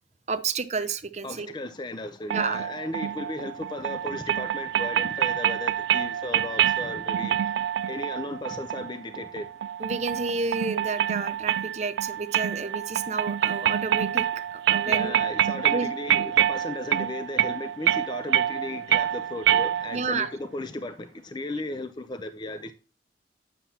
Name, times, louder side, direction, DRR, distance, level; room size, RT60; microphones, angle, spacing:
voice 1, 0.3-1.5 2.3-2.6 9.8-15.2 15.7-15.9 19.9-20.3, right 4 dB, 40° right, 0.7 m, -30 dB
voice 2, 1.2-7.5 7.9-9.5 14.9-22.7, left 2 dB, 25° left, 0.4 m, -35 dB
sound 1, 2.3-20.2, right 10 dB, 90° right, 0.3 m, -27 dB
9.2 x 6.9 x 2.8 m
head